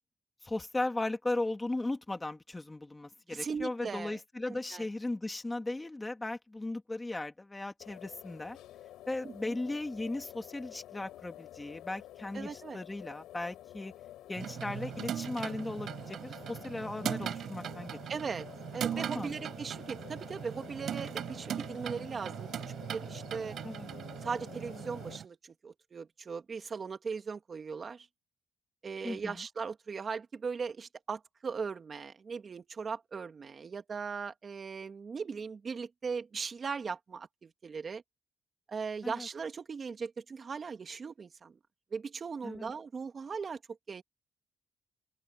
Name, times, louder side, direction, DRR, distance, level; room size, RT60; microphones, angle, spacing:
voice 1, 0.4-8.6 9.1-13.9 14.3-18.0 18.9-19.3 23.6-23.9 29.0-29.4 39.0-39.3 42.4-42.7, left 2 dB, 15° left, 2.7 m, -37 dB
voice 2, 3.3-4.2 4.5-4.9 9.2-9.6 12.3-12.8 18.1-18.5 18.7-22.5 22.9-23.6 24.2-28.1 28.8-38.0 38.7-41.6 41.9-43.6 43.9-44.0, right 5 dB, 40° right, 2.0 m, -39 dB
sound 1, 7.8-25.2, left 13 dB, 85° left, 6.3 m, -50 dB
sound 2, 14.4-25.3, right 9 dB, 65° right, 5.6 m, -39 dB
open air
cardioid pair, 90°, 0 cm